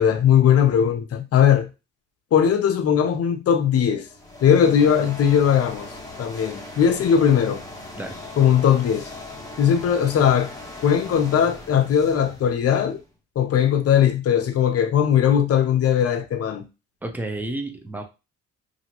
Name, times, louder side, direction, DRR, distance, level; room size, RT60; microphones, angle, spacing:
voice 1, 0.0-1.7 2.3-4.1 4.4-5.9 6.2-7.6 8.4-9.1 9.6-10.5 10.8-13.0 13.4-16.7, left 8 dB, 55° left, 0.6 m, -19 dB
sound 1, 3.9-13.1, left 2 dB, 10° left, 0.9 m, -39 dB
voice 2, 17.0-18.0, right 2 dB, 5° right, 0.6 m, -31 dB
2.8 x 2.6 x 2.8 m
cardioid pair, 90°, 30 cm